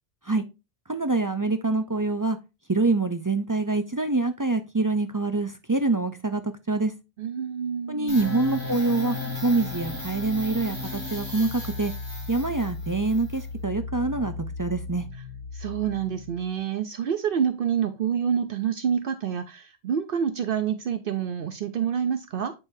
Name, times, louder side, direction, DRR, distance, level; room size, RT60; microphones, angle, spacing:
voice 1, 0.9-2.4 2.7-6.9 7.9-9.2 9.4-11.9 12.3-14.3 14.6-15.1, right 3 dB, 30° right, 0.4 m, -25 dB
voice 2, 7.2-8.2 15.5-22.5, right 8 dB, 65° right, 0.8 m, -27 dB
sound 1, 8.1-16.5, left 3 dB, 15° left, 3.5 m, -35 dB
8.3 x 5.4 x 2.7 m
omnidirectional pair, 1.1 m